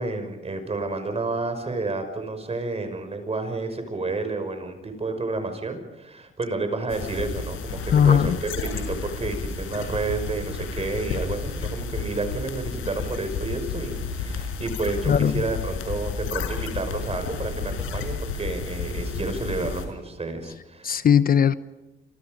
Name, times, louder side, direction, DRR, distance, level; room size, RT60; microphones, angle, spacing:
voice 1, 0.0-21.0, right 3 dB, 30° right, 5.8 m, -30 dB
sound 1, 6.9-19.8, left 5 dB, 85° left, 5.1 m, -31 dB
voice 2, 7.9-8.4 15.1-15.4 20.8-21.5, left 8 dB, 45° left, 0.8 m, -18 dB
28.0 x 25.5 x 5.3 m
cardioid pair, 90°, 20 cm